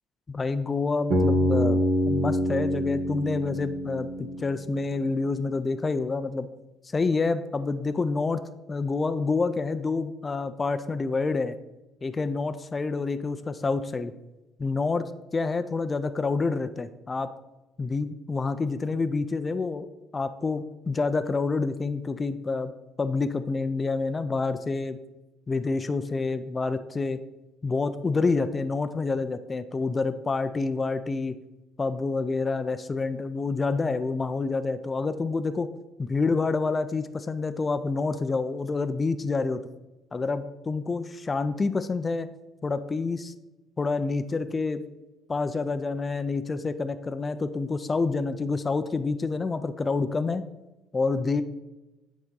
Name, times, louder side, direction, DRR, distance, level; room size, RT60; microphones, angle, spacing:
voice 1, 0.3-6.5 6.9-11.5 12.0-14.1 14.6-15.0 15.3-17.3 17.8-19.9 20.1-22.7 23.0-25.0 25.5-27.2 27.6-31.3 31.8-35.7 36.0-39.6 40.1-42.3 42.6-43.3 43.8-44.8 45.3-50.5 50.9-51.4, left 4 dB, 25° left, 10 dB, 0.4 m, -28 dB
Bass guitar, 1.1-5.1, equal, 70° right, 1.7 m, -26 dB
9.3 x 4.0 x 3.7 m, 1.1 s
cardioid pair, 110°, 0 cm